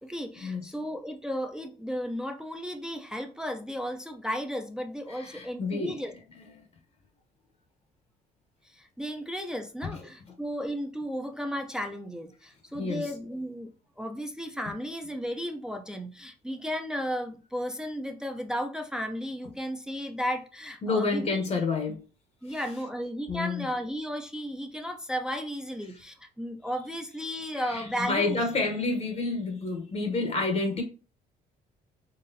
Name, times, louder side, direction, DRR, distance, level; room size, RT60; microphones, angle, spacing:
voice 1, 0.0-6.1 8.7-21.4 22.4-28.4, equal, 5° right, 0.5 m, -34 dB
voice 2, 5.1-6.0 12.7-13.1 20.8-22.0 23.3-23.6 27.5-30.8, left 3 dB, 40° left, 0.8 m, -29 dB
3.9 x 3.2 x 2.7 m
cardioid pair, 110°, 17 cm